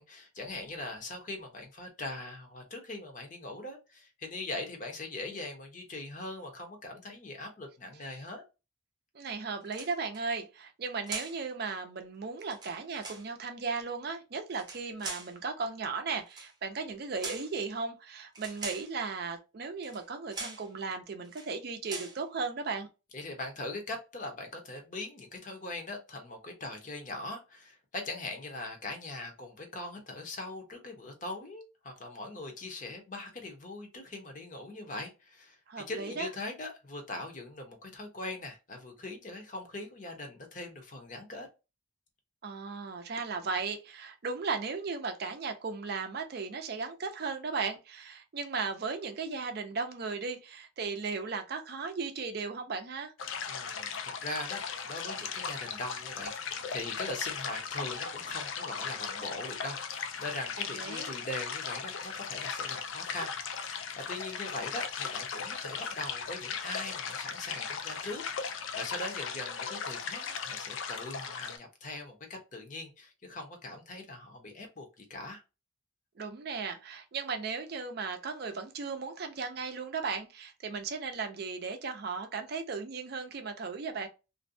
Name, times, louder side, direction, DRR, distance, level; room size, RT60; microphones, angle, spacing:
voice 1, 0.0-8.4 23.1-35.6 35.9-41.5 53.5-53.9 54.2-59.8 60.2-75.4, left 2 dB, 40° left, 0.7 m, -41 dB
voice 2, 9.1-22.9 35.7-36.3 42.4-53.1 60.6-61.1 76.2-84.1, right 4 dB, 50° right, 0.4 m, -36 dB
sound 1, 9.6-10.2 11.1-11.4 12.4-13.3 14.5-15.3 16.3-16.5 17.2-17.5 18.3-18.9 19.8-20.0 20.3-20.7 21.2-21.5 21.8-22.2, right 3 dB, 20° right, 0.7 m, -42 dB
sound 2, 53.2-71.6, left 6 dB, 75° left, 0.4 m, -37 dB
2.5 x 2.1 x 2.5 m
head